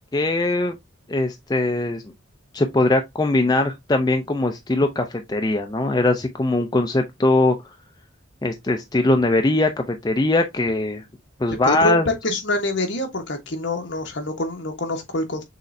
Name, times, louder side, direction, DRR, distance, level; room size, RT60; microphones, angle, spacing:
voice 1, 0.1-0.8 1.1-2.0 2.5-7.6 8.4-11.0 11.4-12.1, left 2 dB, 20° left, 0.4 m, -21 dB
voice 2, 11.6-15.4, left 1 dB, 60° left, 1.2 m, -26 dB
6.3 x 3.2 x 2.6 m
head